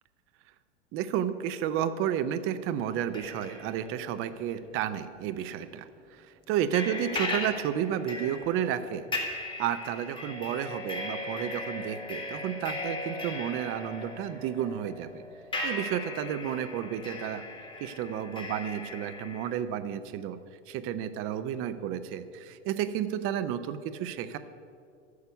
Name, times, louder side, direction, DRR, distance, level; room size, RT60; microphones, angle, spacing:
voice 1, 0.9-15.2 15.6-17.4 17.8-20.4 20.7-24.4, right 10 dB, 35° right, 11 dB, 0.6 m, -32 dB
sound 1, 2.9-5.0 5.4-5.5 6.7-19.5, left 2 dB, 15° left, 1.8 m, -38 dB
9.6 x 6.7 x 8.1 m, 2.3 s
hypercardioid pair, 95°, 37 cm